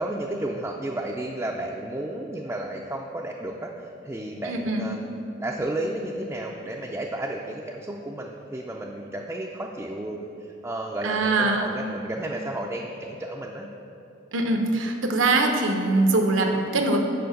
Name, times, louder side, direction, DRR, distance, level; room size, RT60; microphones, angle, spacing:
voice 1, 0.0-5.0 5.4-13.7, right 1 dB, 15° right, -1 dB, 0.4 m, -32 dB
voice 2, 4.4-4.9 11.0-11.7 14.3-17.0, right 2 dB, 85° right, 3 dB, 0.9 m, -23 dB
7.0 x 5.3 x 6.5 m, 2.7 s
head